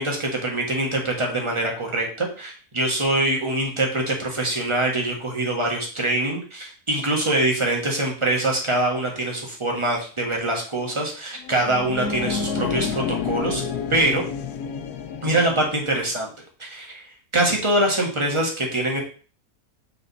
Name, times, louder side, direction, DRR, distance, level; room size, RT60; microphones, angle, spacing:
voice 1, 0.0-13.6 13.9-14.2 15.2-16.3 16.6-17.1 17.3-19.0, right 1 dB, 20° right, 0 dB, 1.4 m, -24 dB
sound 1, 11.4-16.0, left 6 dB, 85° left, 1.2 m, -29 dB
6.6 x 3.8 x 4.1 m, 0.39 s
omnidirectional pair, 1.6 m